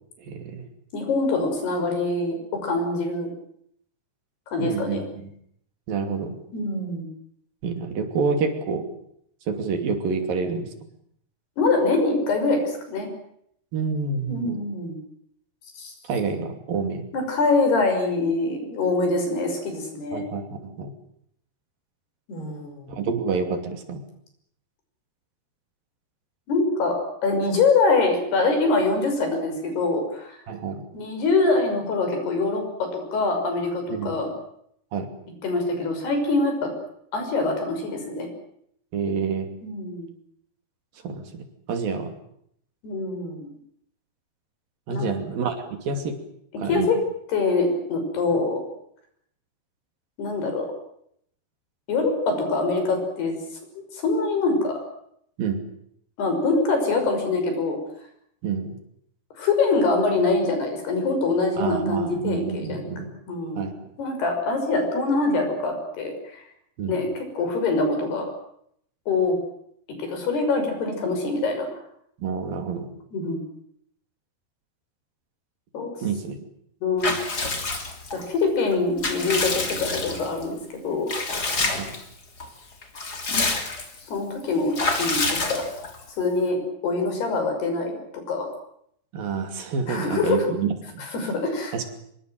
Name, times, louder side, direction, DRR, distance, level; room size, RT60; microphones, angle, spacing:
voice 1, 0.2-0.7 4.6-5.3 5.9-6.3 7.6-8.9 9.5-10.7 13.7-14.6 16.1-17.0 20.1-20.9 22.9-24.0 30.5-30.8 33.9-34.1 34.9-35.1 38.9-39.5 41.0-42.1 44.9-46.1 46.6-46.9 55.4-55.6 58.4-58.8 61.6-63.1 63.6-63.7 66.8-67.0 72.2-72.9 76.0-76.4 81.6-81.9 89.1-91.0 91.7-91.8, right 5 dB, 65° right, 7 dB, 4.4 m, -28 dB
voice 2, 0.9-2.4 2.6-3.3 4.5-5.0 6.5-7.1 11.6-13.1 14.3-15.0 15.8-15.9 17.1-20.2 22.3-23.0 26.5-30.4 30.9-34.3 35.4-36.7 37.1-38.3 39.6-40.1 42.8-43.5 44.9-45.1 46.7-47.0 47.3-48.6 50.2-50.7 51.9-53.4 53.8-54.7 56.2-57.8 59.4-62.8 63.3-63.7 64.0-66.4 66.9-68.3 69.1-69.4 70.0-71.8 73.1-73.4 75.7-75.9 76.8-77.1 78.1-80.6 80.8-81.1 84.1-85.2 85.5-85.6 86.2-86.6 86.8-88.5 89.9-90.5 91.0-91.8, left 3 dB, 80° left, 5 dB, 8.0 m, -24 dB
Water / Bathtub (filling or washing) / Liquid, 77.0-78.2 78.7-80.4 81.1-82.0 82.4-82.5 82.8-84.0 84.7-86.0, left 3 dB, 25° left, 3.2 m, -27 dB
25.5 x 22.5 x 7.7 m, 0.70 s
omnidirectional pair, 4.5 m